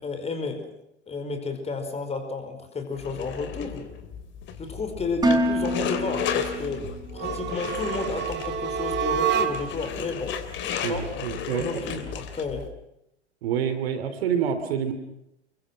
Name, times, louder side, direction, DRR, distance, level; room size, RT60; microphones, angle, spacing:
voice 1, 0.0-0.7 1.1-3.9 4.6-10.4 10.9-11.1 11.5-12.7, left 3 dB, 15° left, 7 dB, 5.0 m, -32 dB
sound 1, 3.0-12.7, left 7 dB, 35° left, 3.2 m, -34 dB
Dishes pots and pans, 5.2-7.3, equal, 10° right, 4.1 m, -26 dB
sound 2, 7.1-9.9, right 8 dB, 30° right, 2.9 m, -28 dB
voice 2, 10.8-11.8 13.4-14.9, right 8 dB, 55° right, 10 dB, 3.1 m, -27 dB
29.0 x 23.0 x 6.1 m, 0.83 s
figure-of-eight pair, 95°, 35 cm